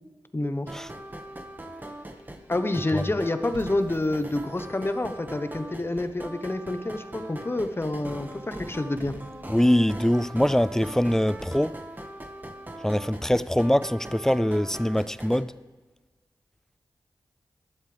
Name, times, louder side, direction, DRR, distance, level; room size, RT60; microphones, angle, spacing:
voice 1, 0.3-0.7 2.5-9.1, left 2 dB, 30° left, 1.1 m, -28 dB
sound 1, 0.7-15.4, right 1 dB, 20° right, 1.7 m, -41 dB
sound 2, 3.5-5.6, right 3 dB, 80° right, 1.4 m, -49 dB
voice 2, 9.5-11.8 12.8-15.5, equal, 5° left, 0.4 m, -23 dB
20.5 x 12.0 x 3.5 m
cardioid pair, 50°, 8 cm